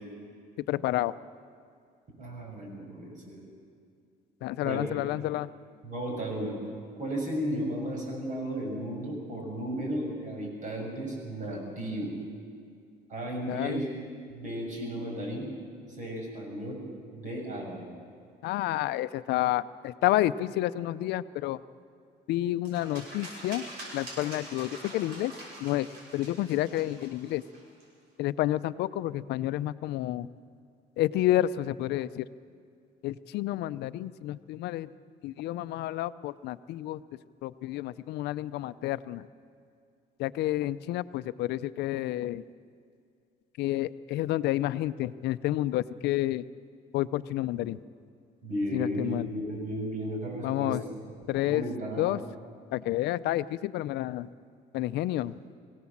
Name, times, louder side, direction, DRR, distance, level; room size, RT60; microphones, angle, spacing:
voice 1, 0.7-1.1 4.4-5.5 13.5-13.8 18.4-21.6 22.3-23.6 23.9-25.3 25.6-25.9 26.1-27.4 28.2-30.3 31.0-32.3 33.0-34.9 35.2-37.0 37.4-39.2 40.2-42.4 43.6-46.4 46.9-47.8 48.7-49.3 50.4-50.8 51.3-51.6 52.0-52.2 52.7-54.3 54.7-55.3, left 14 dB, 80° left, 15 dB, 0.6 m, -29 dB
voice 2, 2.2-3.4 4.6-4.9 5.8-6.5 7.0-12.1 13.1-13.9 14.3-15.5 16.0-16.8 17.1-17.8 48.4-50.9 51.4-52.1, equal, 45° right, 0 dB, 7.3 m, -34 dB
sound 1, 22.7-27.8, right 1 dB, 85° right, 6.1 m, -45 dB
23.5 x 17.0 x 7.3 m, 2.3 s
cardioid pair, 110°, 17 cm